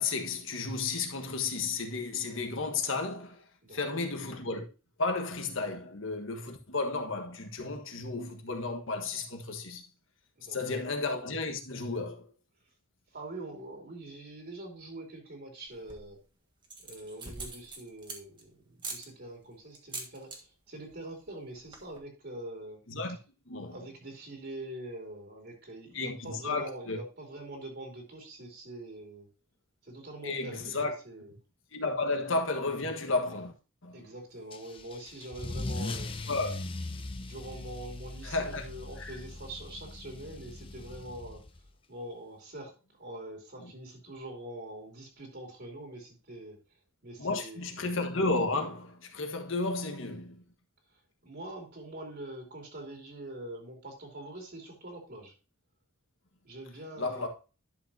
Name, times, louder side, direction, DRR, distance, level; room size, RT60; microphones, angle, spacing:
voice 1, 0.0-3.4 3.7-4.6 5.0-9.8 10.5-12.2 22.9-23.2 23.5-23.7 25.9-27.0 30.2-31.0 31.7-33.5 33.8-34.0 36.3-36.6 38.2-38.6 39.0-39.1 47.2-50.4 57.0-57.3, left 3 dB, 65° left, 1.5 m, -33 dB
voice 2, 3.6-4.0 10.4-10.8 13.1-16.2 16.8-22.8 23.6-29.3 29.8-31.3 33.9-36.2 37.2-41.4 41.9-46.6 47.0-47.6 50.9-55.3 56.4-57.3, right 1 dB, 50° right, 2.8 m, -44 dB
sound 1, 15.7-16.2 16.6-18.4 18.8-19.1 19.7-20.4 20.7-21.0 21.2-21.3 21.6-22.0, right 3 dB, 20° right, 1.4 m, -42 dB
Car / Engine starting / Accelerating revving vroom, 34.5-41.7, left 2 dB, 25° left, 0.7 m, -40 dB
11.0 x 6.5 x 2.8 m
head